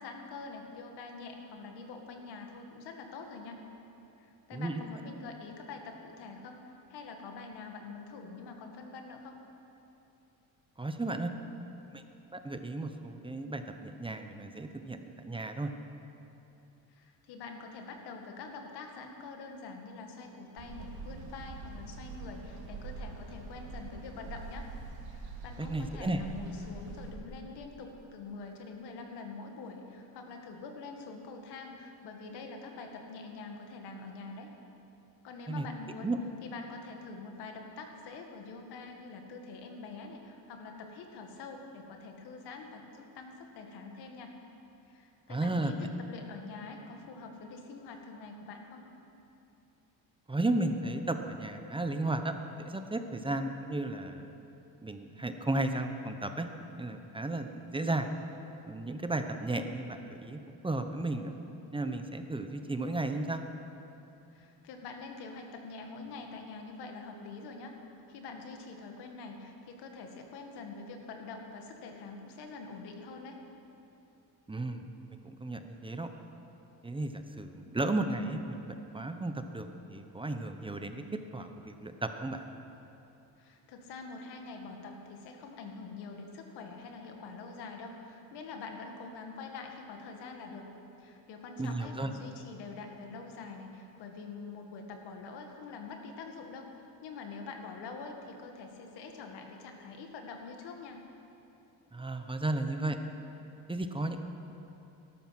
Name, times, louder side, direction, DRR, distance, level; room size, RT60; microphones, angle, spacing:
voice 1, 0.0-3.6 4.2-9.4 16.9-24.7 25.1-34.5 35.2-36.1 36.4-44.3 44.9-48.8 64.3-67.8 68.1-73.4 83.4-90.7 91.0-96.7 97.0-101.0, left 4 dB, 85° left, 3 dB, 2.1 m, -45 dB
voice 2, 10.8-11.3 11.9-12.0 12.3-15.0 15.2-15.7 25.6-26.2 35.5-35.6 36.0-36.2 45.3-45.7 50.3-54.3 54.8-56.5 56.8-58.1 58.6-61.4 61.7-63.4 74.5-74.9 75.2-76.1 76.8-81.0 81.3-82.5 91.6-92.1 101.9-103.0 103.7-104.2, right 2 dB, 15° right, 7 dB, 0.9 m, -34 dB
sound 1, 20.6-27.1, right 4 dB, 70° right, 3.0 m, -44 dB
19.5 x 12.0 x 6.0 m, 2.9 s
cardioid pair, 120°, 39 cm